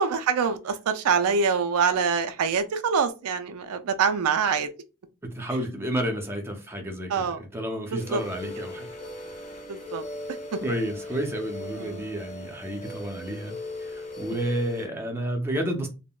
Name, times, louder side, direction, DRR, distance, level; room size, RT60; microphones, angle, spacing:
voice 1, 0.0-4.7 7.1-7.4 7.9-8.2 9.7-10.0 11.8-12.0, right 5 dB, 90° right, 0.4 m, -25 dB
voice 2, 5.2-8.9 10.6-13.5 13.9-15.9, right 1 dB, 10° right, 0.5 m, -31 dB
sound 1, 8.0-14.8, left 1 dB, 30° left, 0.7 m, -38 dB
3.6 x 2.0 x 2.3 m
head